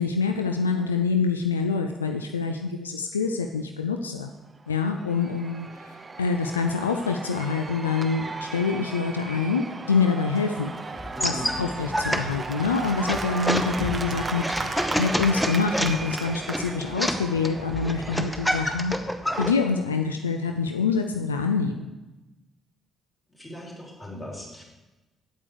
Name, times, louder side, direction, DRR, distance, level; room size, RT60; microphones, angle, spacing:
voice 1, 0.0-4.3 4.7-5.7 6.2-10.7 11.2-18.9 19.4-21.9, left 5 dB, 80° left, 5 dB, 0.3 m, -26 dB
Cheering / Applause / Crowd, 4.6-19.4, right 3 dB, 25° right, 0.7 m, -36 dB
sound 1, 11.0-19.5, equal, 5° left, 0.9 m, -29 dB
voice 2, 11.2-11.5 23.3-24.6, left 1 dB, 20° left, -3 dB, 3.4 m, -39 dB
8.6 x 8.3 x 4.8 m, 1.1 s
figure-of-eight pair, 45°, 0 cm